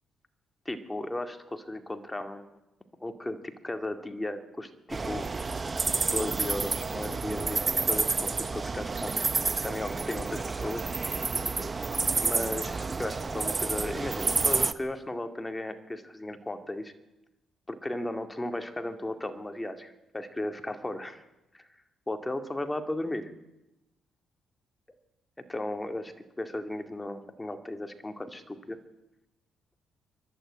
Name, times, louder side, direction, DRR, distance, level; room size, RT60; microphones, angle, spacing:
voice 1, 0.7-2.5 3.0-5.3 6.0-9.2 9.6-10.9 12.2-16.9 17.7-21.2 21.5-21.6 22.1-23.3 25.5-28.8, left 1 dB, 15° left, 7 dB, 2.2 m, -35 dB
sound 1, 4.9-14.7, right 4 dB, 30° right, 1.0 m, -29 dB
26.0 x 11.5 x 9.7 m, 0.99 s
cardioid pair, 90°, 0 cm